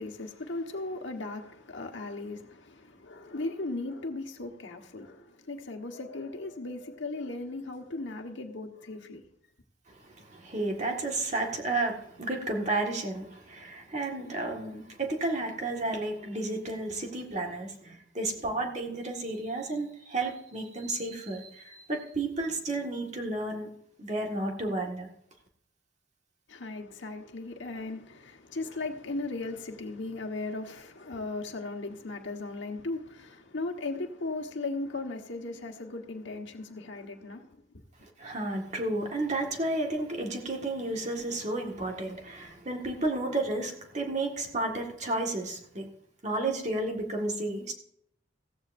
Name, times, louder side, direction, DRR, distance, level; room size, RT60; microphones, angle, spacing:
voice 1, 0.0-9.2 26.5-37.6, left 2 dB, 65° left, 1.4 m, -37 dB
voice 2, 9.9-23.7 24.0-25.1 38.2-45.9 46.2-47.8, right 2 dB, 35° right, 1.8 m, -32 dB
15.5 x 14.5 x 2.6 m
head